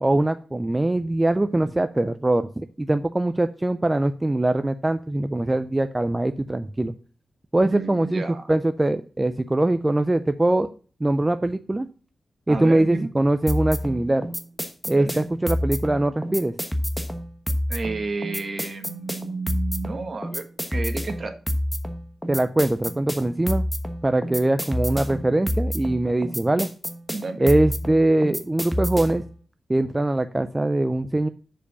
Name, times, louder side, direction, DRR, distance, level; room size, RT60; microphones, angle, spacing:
voice 1, 0.0-6.9 7.5-8.2 8.5-10.7 11.0-11.9 12.5-14.3 14.9-16.5 22.3-23.7 24.0-26.7 27.4-29.2 29.7-31.3, right 1 dB, 15° right, 10 dB, 0.4 m, -22 dB
voice 2, 7.7-8.5 12.5-13.1 14.9-15.2 17.7-20.4 20.7-21.4 27.1-27.5, right 3 dB, 40° right, 7 dB, 1.3 m, -31 dB
sound 1, 13.5-29.3, equal, 5° left, 1.0 m, -28 dB
6.8 x 5.1 x 6.7 m, 0.40 s
wide cardioid pair, 150°, 0 cm